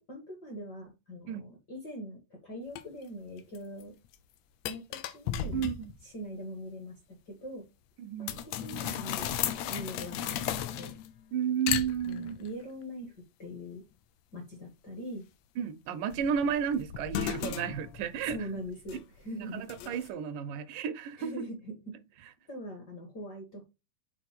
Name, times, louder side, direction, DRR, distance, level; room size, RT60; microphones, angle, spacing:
voice 1, 0.0-3.9 4.6-5.6 6.0-7.7 8.2-9.3 9.7-11.0 12.0-13.8 14.3-15.2 18.2-19.6 21.2-21.9 22.5-23.6, equal, 50° left, 1.3 m, -42 dB
sound 1, 2.8-2.9 3.4-3.8 4.1-4.2 4.7-6.0 8.3-11.2 11.7-12.5 16.1-19.2 19.7-20.1, left 10 dB, 85° left, 1.5 m, -35 dB
voice 2, 5.5-5.9 8.0-8.4 11.3-12.4 15.6-18.4 19.3-21.3, right 8 dB, 80° right, 2.3 m, -32 dB
6.2 x 3.8 x 4.3 m
omnidirectional pair, 3.7 m